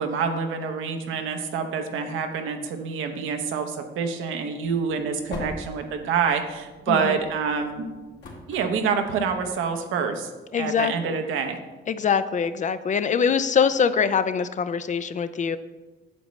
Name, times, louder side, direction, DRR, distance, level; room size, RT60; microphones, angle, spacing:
voice 1, 0.0-7.9 8.5-10.3 10.6-11.6, right 6 dB, 85° right, 5 dB, 0.9 m, -27 dB
sound 1, 4.6-9.7, left 2 dB, 65° left, 2.0 m, -42 dB
voice 2, 10.5-11.1 11.9-15.6, left 6 dB, 40° left, 13 dB, 0.4 m, -23 dB
8.5 x 7.1 x 3.1 m, 1.2 s
cardioid pair, 90°, 20 cm